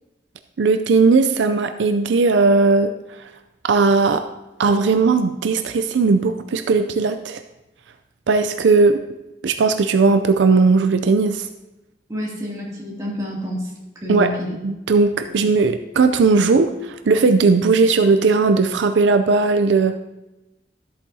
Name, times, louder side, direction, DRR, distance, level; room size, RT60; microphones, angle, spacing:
voice 1, 0.6-2.9 3.2-3.3 3.6-4.3 4.6-7.4 8.3-9.0 9.4-11.5 14.1-14.3 14.6-20.0, right 4 dB, 75° right, 8 dB, 0.4 m, -17 dB
voice 2, 12.1-13.7 14.0-14.5, left 1 dB, 20° right, -5 dB, 2.5 m, -28 dB
13.0 x 8.4 x 2.8 m, 1.0 s
head